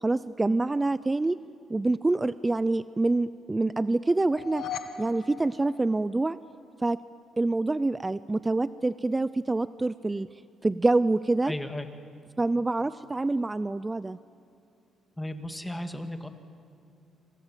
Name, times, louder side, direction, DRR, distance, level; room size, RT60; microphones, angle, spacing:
voice 1, 0.0-1.4 1.7-4.6 5.0-6.4 6.8-7.0 7.4-10.3 10.6-11.5 12.4-14.2, right 2 dB, 20° right, 15 dB, 0.5 m, -26 dB
sound 1, 4.2-6.5, left 8 dB, 65° left, 1.6 m, -39 dB
voice 2, 11.4-11.9 15.2-16.3, left 1 dB, 10° left, 6 dB, 2.3 m, -34 dB
27.5 x 26.0 x 7.6 m, 2.6 s
cardioid pair, 90°, 0 cm